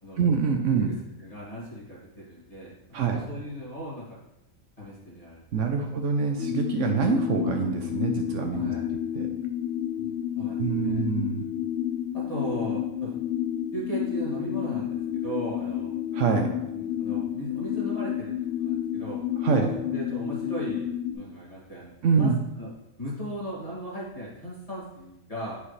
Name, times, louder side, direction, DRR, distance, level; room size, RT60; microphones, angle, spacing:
voice 1, 0.2-0.9 2.9-3.2 5.5-8.7 9.1-9.3 10.6-11.4 16.1-16.5 19.4-19.7 22.0-22.4, right 5 dB, 65° right, 3 dB, 1.0 m, -25 dB
voice 2, 0.8-2.7 3.1-4.2 4.8-6.0 8.5-8.8 10.0-11.0 12.1-13.2 13.7-15.9 16.7-19.2 19.5-22.7 23.0-25.6, right 1 dB, 25° left, -7 dB, 2.3 m, -37 dB
sound 1, 6.4-21.1, left 11 dB, 55° left, 1.1 m, -30 dB
8.4 x 4.9 x 3.2 m, 0.90 s
omnidirectional pair, 1.4 m